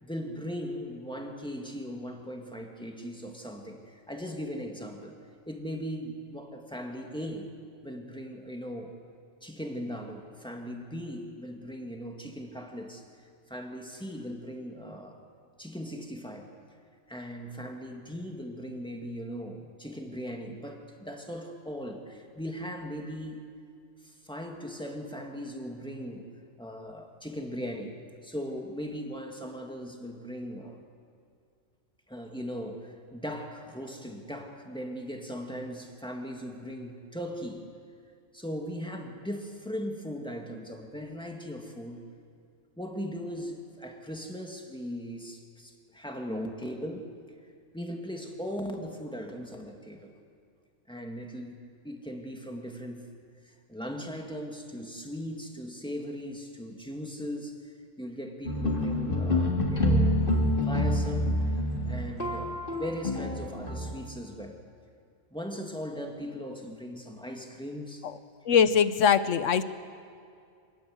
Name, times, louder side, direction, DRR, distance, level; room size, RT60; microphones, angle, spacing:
voice 1, 0.0-5.2 5.5-7.5 7.8-9.0 9.4-13.0 13.5-15.2 15.6-16.5 17.1-23.4 24.0-26.3 26.6-28.0 28.2-30.8 32.1-37.7 38.3-42.0 42.8-47.1 47.7-50.1 50.9-53.1 53.4-60.2 60.6-61.5 61.9-64.6 65.3-68.0, equal, 5° left, 2 dB, 2.0 m, -38 dB
sound 1, 58.4-63.9, left 1 dB, 40° left, 3.1 m, -27 dB
voice 2, 68.4-69.6, left 7 dB, 70° left, 13 dB, 1.2 m, -22 dB
25.5 x 19.0 x 7.9 m, 2.3 s
omnidirectional pair, 1.4 m